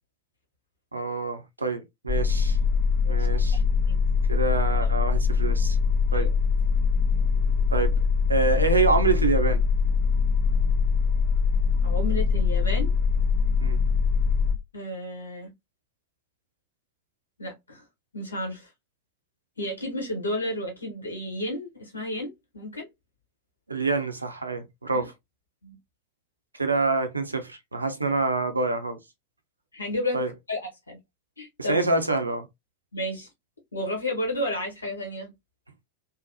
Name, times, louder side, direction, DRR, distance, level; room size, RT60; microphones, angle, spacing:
voice 1, 0.9-2.6 3.1-3.6 4.3-5.8 6.1-6.3 7.7-8.0 8.3-9.6 13.6-13.8 23.7-25.1 26.5-29.0 30.1-30.3 31.6-32.5, right 3 dB, 80° right, 0.5 m, -26 dB
sound 1, 2.1-14.6, left 5 dB, 25° left, 1.0 m, -23 dB
voice 2, 3.0-3.6 3.9-4.0 6.1-6.3 11.8-12.9 14.7-15.5 17.4-17.8 18.1-18.7 19.6-22.9 24.9-25.0 25.6-25.8 29.7-30.2 30.5-31.0 31.4-31.8 32.9-33.3 33.7-35.3, left 1 dB, 80° left, 1.2 m, -32 dB
2.8 x 2.1 x 2.7 m
figure-of-eight pair, 90°, 0 cm